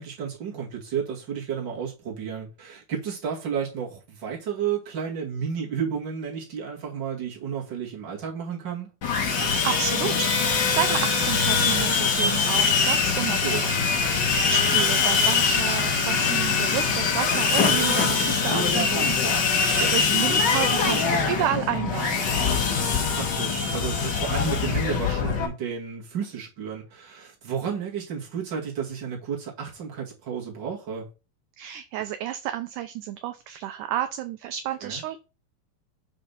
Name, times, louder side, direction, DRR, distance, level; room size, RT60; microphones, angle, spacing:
voice 1, 0.0-8.9 13.2-13.6 19.8-20.0 22.7-31.1 34.8-35.0, right 7 dB, 35° right, 2.3 m, -32 dB
Sawing, 9.0-25.5, left 5 dB, 75° left, 1.0 m, -23 dB
voice 2, 9.3-13.7 14.3-22.2 31.6-35.2, right 11 dB, 80° right, 1.9 m, -31 dB
5.6 x 5.1 x 5.7 m
omnidirectional pair, 4.1 m